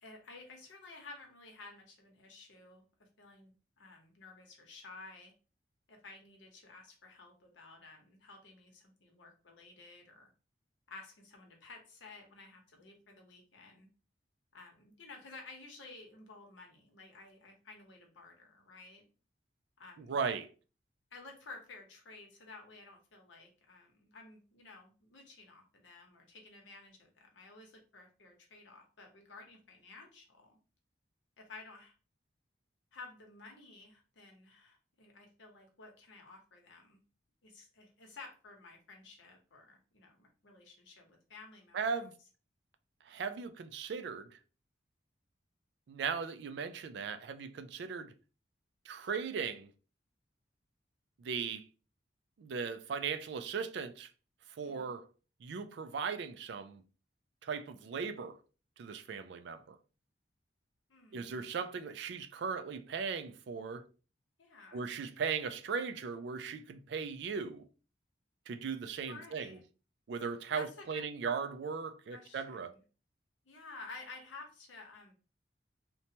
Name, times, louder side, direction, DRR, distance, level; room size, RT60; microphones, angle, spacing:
voice 1, 0.0-3.5 3.8-5.3 5.9-10.3 10.9-13.9 14.5-19.0 19.8-20.2 21.1-30.6 31.4-31.9 32.9-37.0 37.4-42.1 54.6-54.9 60.9-61.4 64.4-64.8 69.1-69.6 70.5-71.0 72.1-72.8 73.4-75.1, left 3 dB, 80° left, 0.8 m, -53 dB
voice 2, 20.0-20.5 41.7-42.1 43.1-44.3 45.9-48.1 48.9-49.7 51.2-51.6 52.4-54.1 54.6-55.1 55.4-56.8 57.4-58.4 58.8-59.8 61.1-63.9 64.7-67.7 68.5-69.6 70.1-72.7, right 5 dB, 65° right, 0.3 m, -38 dB
3.0 x 2.1 x 2.7 m
head